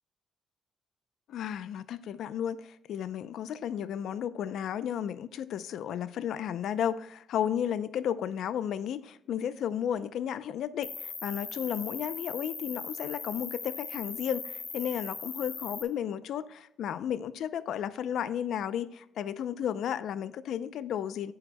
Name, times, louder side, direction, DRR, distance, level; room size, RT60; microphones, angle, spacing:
voice 1, 1.3-21.3, left 9 dB, 75° left, 0.5 m, -33 dB
Cricket, 10.8-15.8, left 4 dB, 40° left, 1.7 m, -40 dB
11.5 x 8.8 x 2.2 m
cardioid pair, 90°, 0 cm